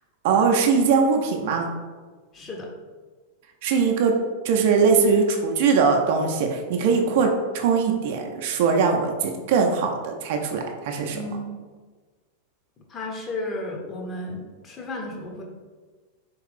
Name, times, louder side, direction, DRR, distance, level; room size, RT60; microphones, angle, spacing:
voice 1, 0.2-1.7 3.6-4.1 4.4-11.2, right 5 dB, 50° right, 3 dB, 0.5 m, -21 dB
voice 2, 2.3-2.7 11.1-11.6 12.9-15.4, left 1 dB, 25° left, 1 dB, 0.7 m, -33 dB
3.6 x 3.1 x 3.4 m, 1.4 s
figure-of-eight pair, 90°, 0 cm